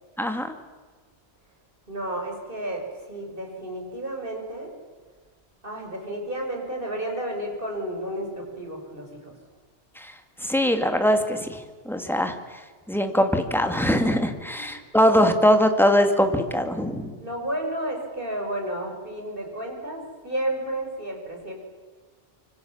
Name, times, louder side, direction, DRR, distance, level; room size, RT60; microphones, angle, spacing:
voice 1, 0.2-0.5 10.0-10.1 10.4-12.4 12.9-17.2, equal, ahead, 6 dB, 2.2 m, -22 dB
voice 2, 1.9-4.8 5.6-9.3 14.5-15.4 17.2-21.5, right 1 dB, 45° right, 2 dB, 5.7 m, -32 dB
25.5 x 24.5 x 7.2 m, 1.5 s
omnidirectional pair, 1.2 m